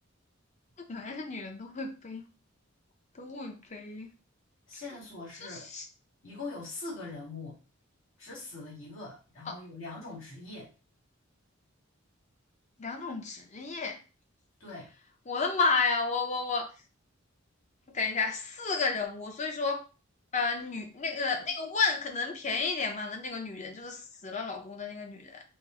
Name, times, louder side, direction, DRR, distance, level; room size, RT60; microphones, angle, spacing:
voice 1, 0.9-2.3 3.1-4.1 5.4-5.8 9.5-9.6 12.8-14.0 15.3-16.7 17.9-19.8 20.3-25.4, left 4 dB, 35° left, 0.7 m, -32 dB
voice 2, 4.7-5.7 6.2-7.6 8.2-10.7 14.6-14.9, left 3 dB, 75° left, 1.9 m, -42 dB
5.1 x 2.1 x 3.7 m
head